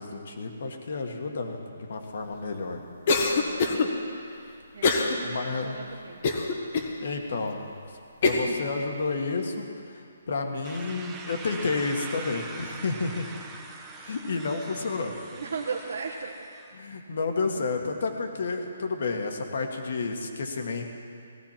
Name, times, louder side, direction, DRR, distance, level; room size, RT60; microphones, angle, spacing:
voice 1, 0.0-2.8 5.2-5.8 7.0-7.6 8.2-9.7 10.3-13.3 14.0-15.2 16.7-20.9, left 4 dB, 55° left, 3 dB, 1.7 m, -30 dB
Cough, 3.1-3.9 4.8-5.2 5.6-5.7 6.2-6.9 7.5-7.6 8.2-8.5, left 3 dB, 35° left, 1.2 m, -23 dB
voice 2, 3.2-3.6 4.7-6.2 15.3-16.3, right 5 dB, 65° right, -3 dB, 1.3 m, -36 dB
sound 1, 10.6-16.7, right 3 dB, 10° right, 0.8 m, -42 dB
17.5 x 14.5 x 4.4 m, 2.5 s
hypercardioid pair, 170°, 0 cm